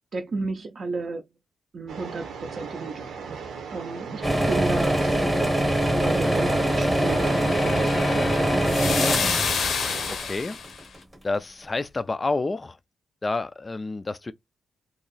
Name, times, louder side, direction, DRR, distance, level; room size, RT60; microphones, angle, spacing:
voice 1, 0.1-1.3 1.7-5.0 6.0-9.3, right 3 dB, 40° right, 0.5 m, -33 dB
sound 1, 1.9-10.2, right 6 dB, 85° right, 0.8 m, -37 dB
sound 2, 4.2-11.1, right 1 dB, 10° right, 0.9 m, -23 dB
sound 3, 6.1-10.8, left 6 dB, 60° left, 0.6 m, -30 dB
voice 2, 10.2-10.6 11.2-12.8 13.2-14.3, left 3 dB, 20° left, 0.3 m, -28 dB
2.9 x 2.6 x 4.0 m
wide cardioid pair, 150°, 0 cm